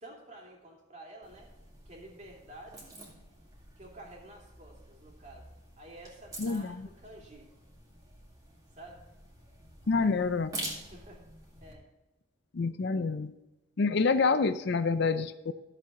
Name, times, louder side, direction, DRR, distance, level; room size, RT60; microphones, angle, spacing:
voice 1, 0.0-1.5 1.9-3.0 3.8-5.5 5.8-7.5 8.7-9.0 9.8-10.1 10.9-11.2 11.6-11.9, right 1 dB, 35° right, -1 dB, 2.7 m, -50 dB
sound 1, 1.2-11.7, right 1 dB, 15° right, 2.1 m, -47 dB
voice 2, 6.4-6.9 9.9-10.5 12.5-13.3 13.8-15.5, left 4 dB, 50° left, 12 dB, 0.4 m, -27 dB
13.5 x 7.4 x 3.7 m, 1.0 s
head